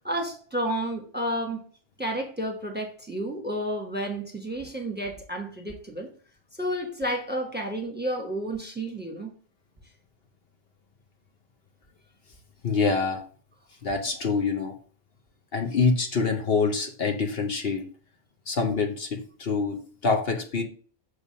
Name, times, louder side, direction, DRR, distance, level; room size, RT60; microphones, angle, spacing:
voice 1, 0.0-1.6 2.0-6.1 6.6-9.3, right 1 dB, 10° right, 1.1 m, -31 dB
voice 2, 12.6-13.2 13.8-14.7 15.5-17.9 18.5-20.6, left 4 dB, 60° left, 1.0 m, -26 dB
6.4 x 3.5 x 5.4 m
omnidirectional pair, 1.2 m